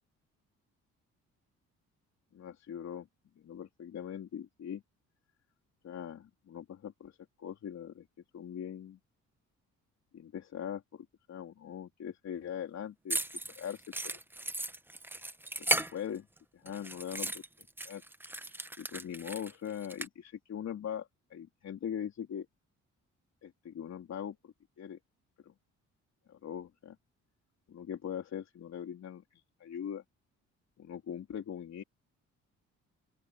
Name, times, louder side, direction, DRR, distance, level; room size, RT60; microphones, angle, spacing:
voice 1, 2.3-3.1 3.4-4.8 5.8-8.1 8.3-9.0 10.1-13.2 13.6-13.8 15.6-16.3 16.5-17.4 17.8-18.0 18.8-22.5 23.4-25.0 25.4-25.5 26.3-27.0 27.7-30.0 30.8-31.8, left 9 dB, 60° left, 3.7 m, -41 dB
sound 1, 13.1-16.4 16.7-20.1, right 1 dB, 5° right, 0.8 m, -36 dB
open air
cardioid pair, 90°, 30 cm